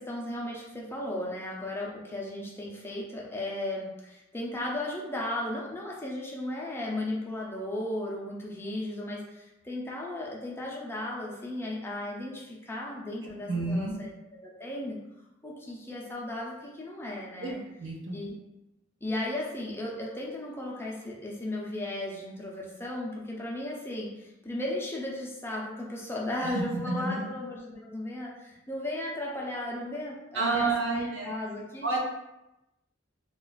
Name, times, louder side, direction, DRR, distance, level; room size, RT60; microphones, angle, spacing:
voice 1, 0.0-15.0 15.4-17.6 18.1-18.4 19.0-32.0, left 1 dB, 10° left, -3 dB, 0.5 m, -35 dB
voice 2, 13.2-13.9 17.4-17.5 17.8-18.2 26.5-27.2 30.3-31.3 31.8-32.0, right 3 dB, 70° right, -1 dB, 0.7 m, -30 dB
2.4 x 2.3 x 3.9 m, 0.91 s
head